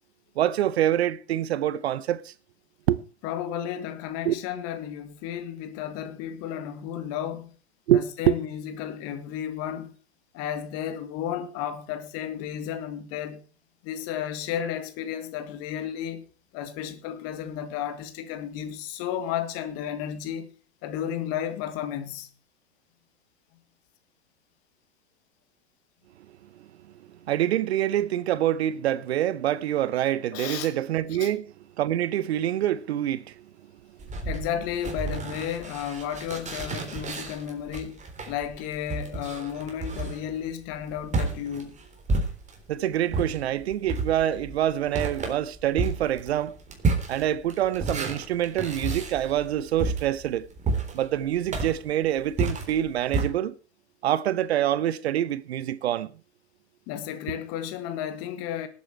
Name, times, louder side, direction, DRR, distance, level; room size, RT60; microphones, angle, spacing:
voice 1, 0.4-2.3 2.9-3.0 4.2-4.3 7.9-8.4 27.3-31.5 31.8-33.4 42.7-46.5 47.1-50.5 50.9-53.5 54.0-56.1, right 12 dB, 70° right, 0.9 m, -26 dB
voice 2, 3.2-7.5 7.9-9.9 10.3-13.4 13.8-16.2 16.5-20.5 20.8-22.3 30.3-30.7 31.2-31.3 34.3-41.8 56.9-58.7, left 9 dB, 45° left, 1.9 m, -33 dB
sound 1, 34.0-42.7 43.1-53.3, right 3 dB, 20° right, 3.7 m, -31 dB
18.5 x 8.4 x 4.5 m
hypercardioid pair, 105°, 33 cm